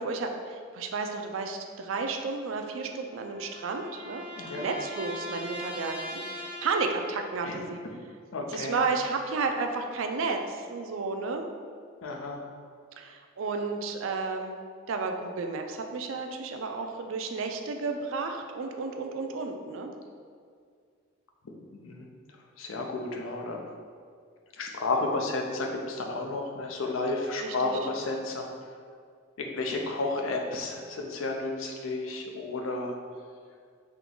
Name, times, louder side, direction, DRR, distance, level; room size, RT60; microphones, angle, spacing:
voice 1, 0.0-7.8 8.5-11.5 13.0-14.5 14.9-19.9 27.4-27.7, right 4 dB, 70° right, 4 dB, 0.4 m, -32 dB
sound 1, 2.7-7.4, equal, 10° right, 0.5 m, -41 dB
voice 2, 4.3-4.7 7.4-7.6 8.3-8.8 12.0-12.5 21.7-23.6 24.6-28.5 29.4-33.0, left 2 dB, 75° left, 1 dB, 0.5 m, -32 dB
3.6 x 2.9 x 3.7 m, 2.1 s
head